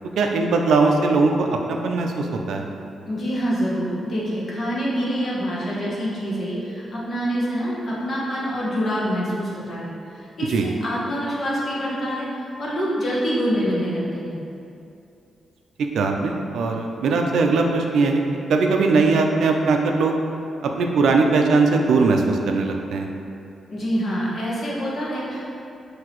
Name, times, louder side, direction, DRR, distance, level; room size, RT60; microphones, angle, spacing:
voice 1, 0.2-2.6 10.5-10.7 15.9-18.2 18.5-20.1 20.6-23.1, right 3 dB, 80° right, 2 dB, 0.4 m, -20 dB
voice 2, 3.1-14.4 23.7-25.6, equal, 40° left, -6 dB, 1.0 m, -26 dB
5.8 x 2.7 x 2.9 m, 2.6 s
wide cardioid pair, 145°, 0 cm